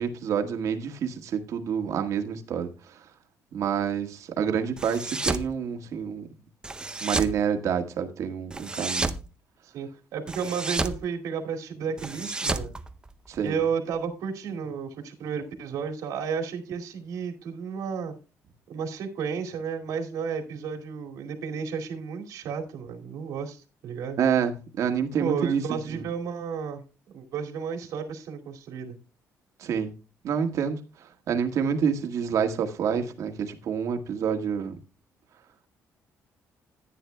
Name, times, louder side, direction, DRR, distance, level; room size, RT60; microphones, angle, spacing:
voice 1, 0.0-3.0 3.5-6.3 7.0-9.1 13.3-13.5 24.2-24.5 24.8-26.0 29.6-29.9 30.2-34.7, right 7 dB, 65° right, 1.6 m, -28 dB
sound 1, 4.8-5.5 6.6-7.4 8.5-9.2 10.3-11.0 12.0-13.5, right 2 dB, 15° right, 0.6 m, -31 dB
voice 2, 9.6-12.7 13.4-18.1 18.7-24.2 25.2-26.8 27.1-29.0, right 6 dB, 85° right, 2.4 m, -32 dB
14.0 x 9.3 x 2.2 m
cardioid pair, 140°, 6 cm